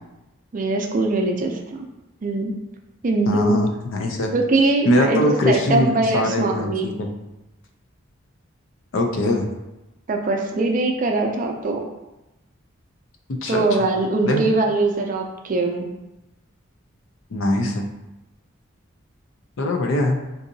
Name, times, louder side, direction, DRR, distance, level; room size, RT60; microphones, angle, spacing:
voice 1, 0.5-1.9 2.2-2.5 3.0-3.6 4.3-6.9 10.1-11.8 13.5-15.9, right 2 dB, 40° right, 2 dB, 0.4 m, -22 dB
voice 2, 3.3-4.3 4.8-7.1 8.9-9.4 13.3-13.7 14.2-14.4 17.3-17.9 19.6-20.2, left 1 dB, 70° left, 4 dB, 0.5 m, -22 dB
3.8 x 2.6 x 2.6 m, 0.97 s
head